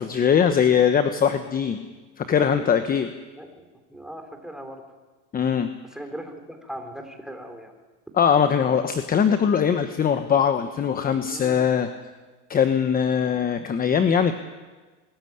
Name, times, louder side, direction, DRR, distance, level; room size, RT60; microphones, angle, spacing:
voice 1, 0.0-1.8 2.2-3.1 5.3-5.7 8.2-11.9 12.5-14.3, left 7 dB, 20° left, 9 dB, 1.0 m, -21 dB
voice 2, 3.4-4.8 5.9-7.7 11.3-11.6, equal, ahead, 5 dB, 3.3 m, -39 dB
23.5 x 14.0 x 9.5 m, 1.3 s
supercardioid pair, 120°, 38 cm